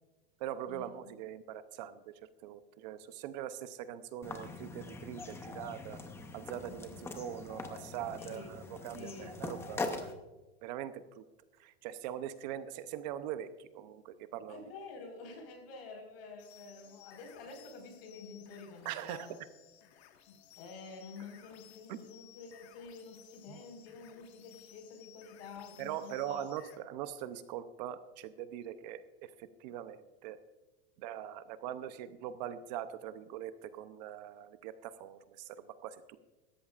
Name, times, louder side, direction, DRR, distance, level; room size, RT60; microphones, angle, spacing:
voice 1, 0.4-2.1 2.4-6.0 6.3-10.1 10.6-11.3 11.6-14.6 18.8-19.3 21.9-22.0 23.5-23.6 25.8-30.4 31.0-36.2, right 10 dB, 45° right, 12 dB, 0.6 m, -42 dB
sound 1, 4.2-10.1, left 3 dB, 10° left, 0.6 m, -42 dB
voice 2, 8.2-8.5 8.9-9.4 14.5-19.4 20.3-26.4, left 4 dB, 65° left, 3 dB, 4.9 m, -49 dB
sound 2, 16.4-26.8, left 11 dB, 85° left, 1.6 m, -59 dB
17.5 x 14.0 x 2.4 m, 1.1 s
supercardioid pair, 170°, 32 cm